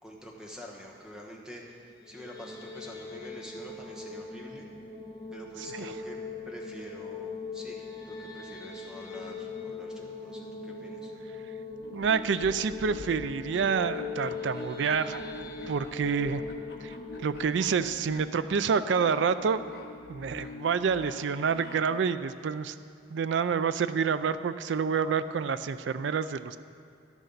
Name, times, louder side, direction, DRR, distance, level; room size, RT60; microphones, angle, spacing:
voice 1, 0.0-4.7 5.3-6.2 6.5-11.1, equal, 5° right, -2 dB, 1.2 m, -47 dB
sound 1, 1.9-19.0, left 4 dB, 20° left, 1.0 m, -41 dB
sound 2, 11.7-22.0, left 2 dB, 55° left, 0.9 m, -45 dB
voice 2, 11.9-15.3 15.7-16.4 16.8-16.9 17.2-19.6 20.1-22.7 23.1-26.6, right 6 dB, 80° right, 13 dB, 0.4 m, -28 dB
12.0 x 11.0 x 4.0 m, 2.4 s
head